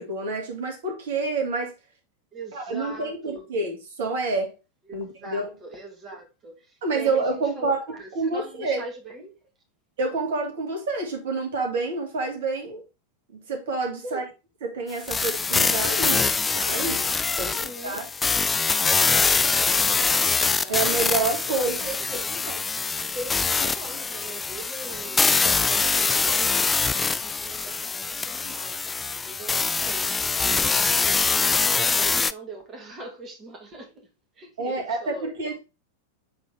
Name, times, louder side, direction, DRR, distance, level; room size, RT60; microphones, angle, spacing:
voice 1, 0.0-1.7 2.5-4.5 4.9-5.5 6.8-7.8 8.1-8.8 10.0-12.8 13.3-14.2 14.6-17.1 17.4-17.5 17.8-18.0 20.7-21.7 22.5-22.6 34.6-35.6, right 3 dB, 55° right, 2.4 m, -28 dB
voice 2, 2.3-3.5 4.9-9.4 14.0-14.2 17.3-18.0 19.3-21.1 21.4-22.5 23.0-28.8 29.1-34.1 34.4-35.6, right 2 dB, 25° right, 2.4 m, -41 dB
sound 1, 15.1-32.3, left 4 dB, 15° left, 0.3 m, -24 dB
7.8 x 4.1 x 3.4 m
figure-of-eight pair, 90°, 0 cm